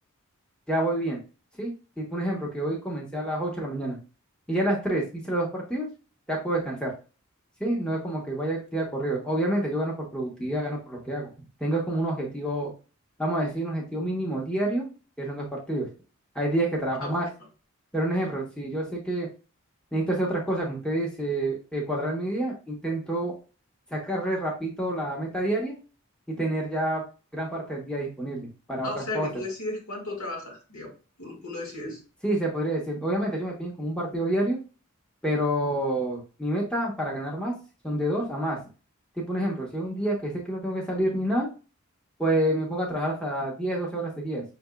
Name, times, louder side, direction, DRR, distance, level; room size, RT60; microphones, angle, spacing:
voice 1, 0.7-1.2 1.6-4.0 4.5-5.9 6.3-6.9 7.6-11.3 11.6-12.7 13.2-14.9 15.2-15.9 16.3-17.3 17.9-19.3 19.9-23.3 23.9-25.7 26.4-27.0 27.3-29.3 31.8-31.9 32.2-34.6 35.2-37.5 37.8-38.6 39.2-41.5 42.2-44.4, right 1 dB, 5° left, -3 dB, 1.0 m, -28 dB
voice 2, 28.8-30.9 31.2-32.0, left 2 dB, 70° left, -1 dB, 2.0 m, -35 dB
5.9 x 3.5 x 2.3 m, 0.34 s
head